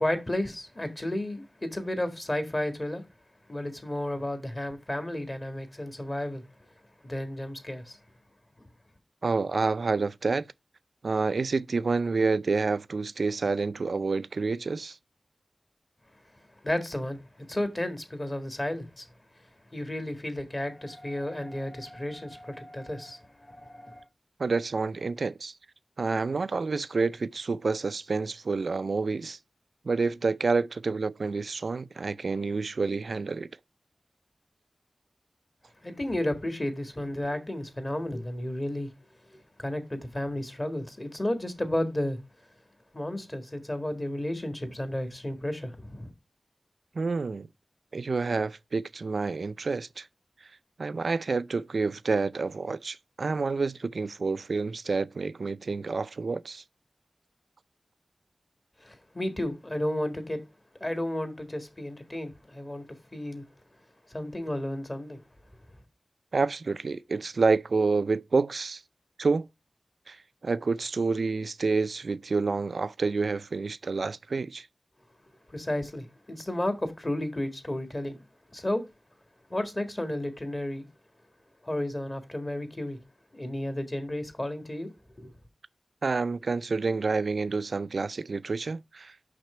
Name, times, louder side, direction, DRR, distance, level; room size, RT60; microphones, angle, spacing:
voice 1, 0.0-3.0 3.5-6.4 7.0-8.0 16.6-17.2 17.5-19.1 19.7-24.0 35.8-38.9 39.3-42.2 42.9-46.1 58.8-60.4 60.8-63.4 64.1-65.2 75.5-78.2 78.5-78.8 79.5-80.8 81.6-83.0 83.3-84.9 85.2-85.3, left 1 dB, 30° left, 1.7 m, -32 dB
voice 2, 9.2-10.5 11.0-15.0 24.4-25.5 26.0-29.4 29.8-33.5 46.9-47.5 47.9-50.1 50.8-56.6 66.3-68.8 69.2-69.5 70.1-74.7 86.0-89.1, right 4 dB, 75° right, 0.4 m, -28 dB
6.0 x 5.8 x 4.2 m
wide cardioid pair, 85°, 0 cm